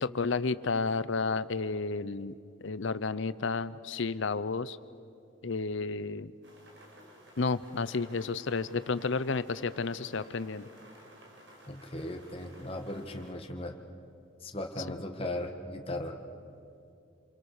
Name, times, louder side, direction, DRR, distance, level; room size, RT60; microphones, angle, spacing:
voice 1, 0.0-2.3 2.6-4.8 5.4-6.3 7.4-10.7, left 4 dB, 70° left, 16 dB, 0.7 m, -31 dB
sound 1, 6.4-13.3, right 1 dB, 65° right, 5.2 m, -55 dB
voice 2, 11.7-13.7 14.4-16.2, left 1 dB, 30° left, 3 dB, 1.5 m, -37 dB
27.5 x 23.0 x 6.6 m, 2.5 s
head